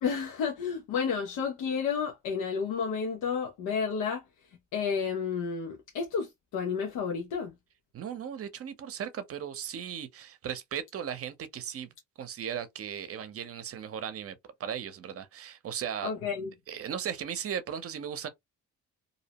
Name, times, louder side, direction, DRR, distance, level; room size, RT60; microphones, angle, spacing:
voice 1, 0.0-4.2 4.7-7.5 16.0-16.5, left 6 dB, 85° left, 0.7 m, -31 dB
voice 2, 7.9-11.9 12.2-16.1 16.7-18.3, right 8 dB, 50° right, 0.7 m, -37 dB
2.7 x 2.0 x 2.8 m
cardioid pair, 90°, 30 cm